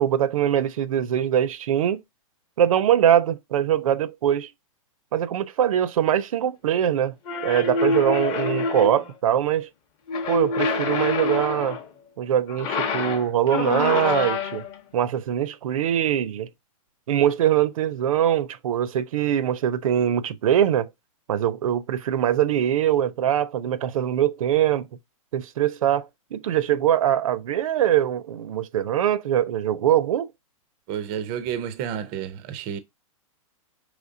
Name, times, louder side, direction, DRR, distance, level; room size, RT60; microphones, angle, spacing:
voice 1, 0.0-2.0 2.6-4.5 5.1-7.2 7.4-9.7 10.3-11.8 12.2-14.6 14.9-16.5 17.1-20.9 21.3-24.9 25.3-30.3, right 10 dB, 75° right, 0.6 m, -22 dB
sound 1, 7.2-9.1 10.1-11.9 12.5-14.8, left 4 dB, 25° left, 0.7 m, -26 dB
voice 2, 30.9-32.8, right 9 dB, 25° right, 0.4 m, -30 dB
5.1 x 3.1 x 2.6 m
hypercardioid pair, 160°, 18 cm